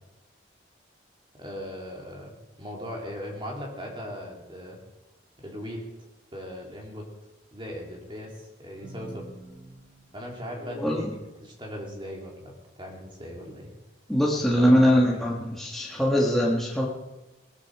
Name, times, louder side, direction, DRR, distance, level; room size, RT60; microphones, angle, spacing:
voice 1, 1.3-4.8 5.4-5.8 6.3-7.0 7.5-9.3 10.1-11.1 11.4-13.7 14.3-15.3, equal, 25° right, -1 dB, 3.5 m, -39 dB
sound 1, 8.8-11.0, equal, 75° right, 6.7 m, -45 dB
voice 2, 10.8-11.1 14.1-16.9, equal, ahead, -4 dB, 1.7 m, -22 dB
18.5 x 13.5 x 4.9 m, 1.1 s
head